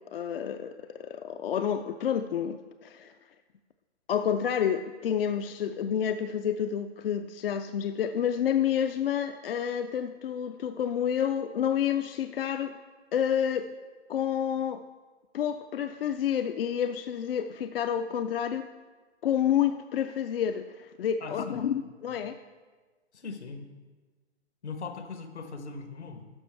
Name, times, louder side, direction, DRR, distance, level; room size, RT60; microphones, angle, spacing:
voice 1, 0.0-3.1 4.1-12.7 13.1-13.7 14.1-14.8 15.3-18.7 19.2-22.4, left 9 dB, 55° left, 9 dB, 0.4 m, -29 dB
voice 2, 21.2-21.9 23.1-23.6 24.6-26.3, left 4 dB, 75° left, 7 dB, 1.1 m, -40 dB
12.5 x 6.3 x 3.3 m, 1.3 s
figure-of-eight pair, 125°, 34 cm